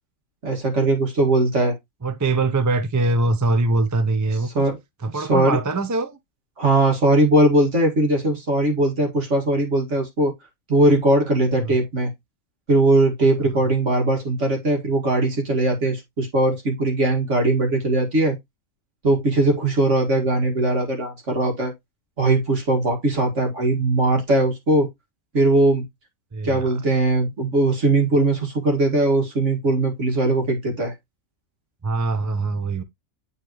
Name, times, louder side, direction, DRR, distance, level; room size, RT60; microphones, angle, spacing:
voice 1, 0.4-1.8 4.5-4.8 5.1-5.6 6.6-10.3 10.7-12.1 12.7-18.4 19.0-21.7 22.2-24.9 25.3-25.8 26.4-30.9, right 2 dB, 55° right, 2.3 m, -20 dB
voice 2, 2.0-4.6 5.0-6.2 11.6-11.8 26.3-26.7 31.8-32.8, right 3 dB, 25° right, 0.4 m, -23 dB
9.6 x 4.0 x 3.0 m
omnidirectional pair, 1.5 m